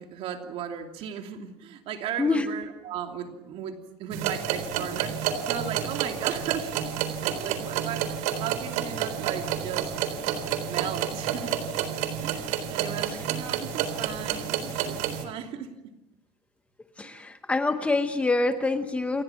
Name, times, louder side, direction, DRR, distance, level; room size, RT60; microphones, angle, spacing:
voice 1, 0.0-7.0 7.2-9.9 10.7-11.6 12.2-15.7 17.0-17.2, right 8 dB, 45° right, 4 dB, 2.9 m, -36 dB
voice 2, 2.2-2.5 13.1-13.3 17.0-19.2, left 3 dB, 10° left, 8 dB, 0.9 m, -26 dB
sound 1, 4.1-15.2, right 9 dB, 65° right, 3.8 m, -30 dB
29.5 x 26.5 x 5.9 m, 0.94 s
cardioid pair, 175°, 14 cm